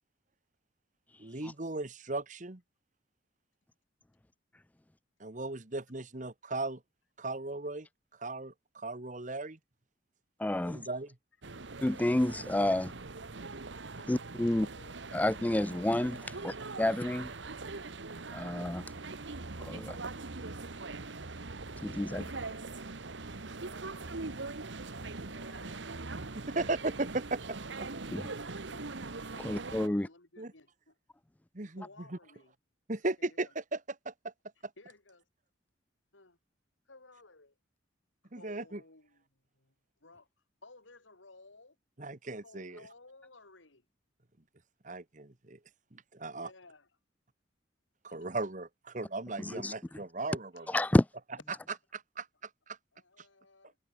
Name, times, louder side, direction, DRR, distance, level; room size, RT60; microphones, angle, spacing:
voice 1, 1.2-2.6 5.2-6.8 7.2-7.9 8.2-9.6 10.6-11.1 26.3-27.6 30.4-30.5 31.5-32.2 32.9-33.8 34.0-34.3 38.3-38.8 42.0-42.8 44.8-45.6 45.9-46.5 48.0-50.8 51.9-52.8, right 2 dB, 40° right, 1.4 m, -37 dB
voice 2, 10.4-10.8 11.8-12.9 14.1-14.7 15.1-17.3 18.3-18.9 19.6-20.0 21.8-22.2 28.1-28.3 29.4-30.1 49.4-49.7 50.7-51.0, left 1 dB, 10° left, 0.3 m, -29 dB
sound 1, 11.4-29.9, right 3 dB, 70° right, 1.3 m, -42 dB
voice 3, 13.7-14.1 14.5-14.9 22.1-22.8 23.6-24.6 25.2-26.0 27.7-27.8 28.1-28.9 29.3-29.5 29.8-31.0 31.7-32.5 33.1-33.5 34.8-35.3 36.1-36.4 36.9-37.6 38.2-39.7 40.0-40.3 40.6-41.8 42.4-43.9 46.3-46.9 48.1-48.3 50.5-50.8 52.9-53.8, left 3 dB, 85° left, 3.8 m, -57 dB
head